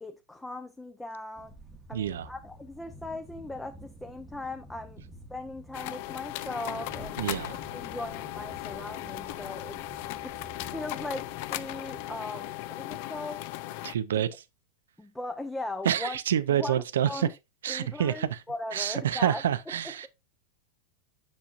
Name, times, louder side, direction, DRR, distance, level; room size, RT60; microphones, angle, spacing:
voice 1, 0.0-1.5 1.9-5.0 5.3-7.4 7.7-9.8 10.2-10.4 10.7-13.4 14.1-14.2 15.0-16.2 16.5-17.3 17.7-19.7, left 2 dB, 5° left, 0.6 m, -39 dB
sound 1, 1.4-12.2, right 1 dB, 15° right, 1.0 m, -50 dB
voice 2, 1.9-2.3 7.2-7.6 13.8-14.3 15.8-17.3 17.6-18.4 18.7-20.1, right 10 dB, 90° right, 0.5 m, -27 dB
sound 2, 5.7-13.9, left 16 dB, 60° left, 0.4 m, -37 dB
7.3 x 6.3 x 2.5 m
supercardioid pair, 125°, 0 cm